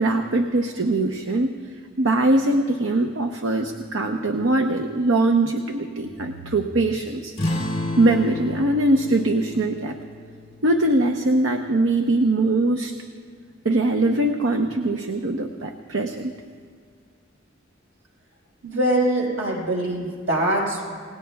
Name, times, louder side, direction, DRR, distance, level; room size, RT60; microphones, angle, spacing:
voice 1, 0.0-1.5 2.0-7.4 8.0-10.0 10.6-12.9 13.6-16.4, right 2 dB, 70° right, 4 dB, 0.8 m, -22 dB
sound 1, 7.4-12.4, left 2 dB, 35° left, 2.6 m, -32 dB
voice 2, 18.6-20.8, right 1 dB, 85° right, -3 dB, 5.1 m, -23 dB
29.0 x 18.0 x 2.3 m, 2.1 s
head